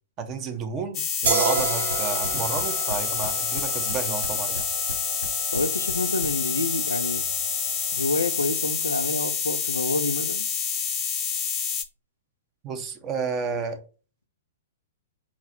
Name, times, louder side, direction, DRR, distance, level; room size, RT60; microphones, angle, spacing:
voice 1, 0.2-4.7 12.6-13.8, right 5 dB, 25° right, 0.7 m, -31 dB
sound 1, 0.9-11.8, left 6 dB, 25° left, 0.6 m, -28 dB
sound 2, 1.2-2.9 3.2-4.9 5.2-6.3, left 1 dB, 85° right, 0.8 m, -34 dB
sound 3, 1.3-8.6, right 4 dB, 65° right, 1.2 m, -32 dB
voice 2, 5.5-7.2 7.9-10.5, left 2 dB, 85° left, 0.5 m, -28 dB
4.1 x 2.3 x 4.3 m
figure-of-eight pair, 110°, 0 cm